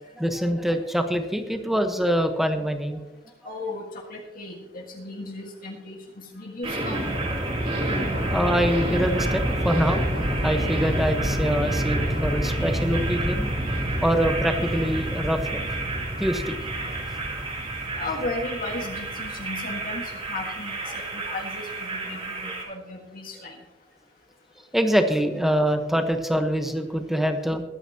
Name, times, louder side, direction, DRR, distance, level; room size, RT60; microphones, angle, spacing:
voice 1, 0.2-3.0 8.3-13.5 14.0-15.6 16.2-16.6 24.7-27.6, equal, ahead, 5 dB, 1.1 m, -24 dB
voice 2, 3.4-3.8 4.1-7.1 17.9-20.8 21.1-23.5, left 2 dB, 50° left, 0 dB, 1.7 m, -35 dB
sound 1, 6.6-22.6, right 1 dB, 35° right, 3.1 m, -28 dB
22.0 x 9.9 x 2.9 m, 1.1 s
head